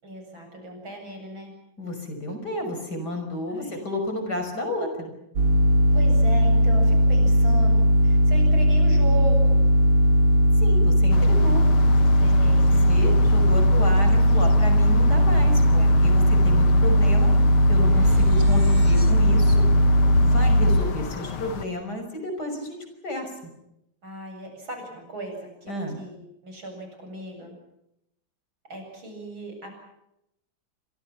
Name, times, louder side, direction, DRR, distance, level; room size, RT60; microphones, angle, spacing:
voice 1, 0.0-1.5 3.5-3.8 5.9-9.6 12.2-12.9 15.8-16.7 24.0-27.5 28.7-29.7, right 2 dB, 65° right, 3 dB, 8.8 m, -37 dB
voice 2, 1.8-5.1 10.6-11.7 12.9-17.3 17.7-19.7 20.2-23.3 25.7-26.0, left 1 dB, 45° left, 5 dB, 6.4 m, -31 dB
sound 1, 5.4-20.8, equal, 90° right, 3.2 m, -18 dB
sound 2, 11.1-21.7, left 6 dB, 75° left, 2.4 m, -34 dB
sound 3, 15.7-21.6, right 1 dB, 35° right, 4.1 m, -38 dB
28.5 x 26.0 x 5.9 m, 0.83 s
omnidirectional pair, 2.4 m